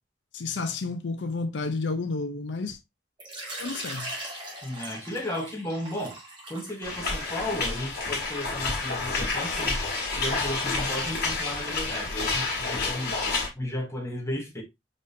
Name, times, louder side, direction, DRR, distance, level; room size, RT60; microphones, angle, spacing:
voice 1, 0.3-2.8 3.6-4.1, left 3 dB, 80° left, 0.6 m, -31 dB
Water / Liquid, 3.2-8.7, right 1 dB, 30° right, 2.0 m, -40 dB
voice 2, 4.6-6.2 6.5-9.8 10.1-13.1 13.5-14.6, left 1 dB, 15° left, 1.3 m, -34 dB
sound 1, 6.8-13.5, left 3 dB, 60° left, 1.9 m, -29 dB
5.2 x 3.5 x 2.6 m
head